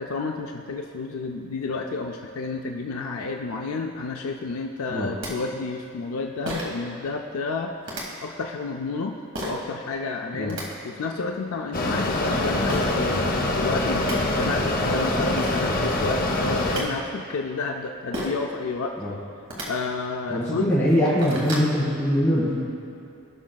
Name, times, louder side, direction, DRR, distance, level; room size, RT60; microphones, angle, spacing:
voice 1, 0.0-7.7 8.2-18.9 19.7-20.7, left 3 dB, 90° left, 2 dB, 0.4 m, -30 dB
sound 1, 4.9-5.0 5.2-5.3 6.5-6.8 7.8-8.0 9.3-9.6 10.3-10.6 12.7-12.9 13.6-13.7 14.0-14.2 15.0-15.1 15.4-15.6 16.4-16.8 18.1-18.4 19.4-19.7 20.3-20.4 20.8-21.7, right 1 dB, 65° right, 1.6 m, -32 dB
Mechanisms, 11.7-16.8, left 1 dB, 45° left, 0.8 m, -24 dB
voice 2, 20.3-22.6, equal, 15° left, -11 dB, 1.5 m, -22 dB
15.5 x 6.1 x 2.3 m, 2.7 s
head